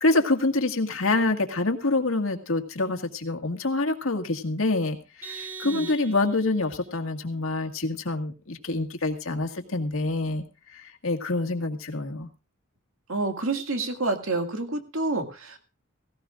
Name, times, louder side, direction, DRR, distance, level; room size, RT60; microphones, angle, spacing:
voice 1, 0.0-10.4 10.7-12.3, left 2 dB, 75° left, 5 dB, 1.9 m, -26 dB
Vehicle horn car horn honking, 5.2-6.6, right 5 dB, 10° right, 1.7 m, -40 dB
voice 2, 13.1-15.6, right 2 dB, 75° right, 5 dB, 2.1 m, -28 dB
17.0 x 17.0 x 2.5 m, 0.31 s
head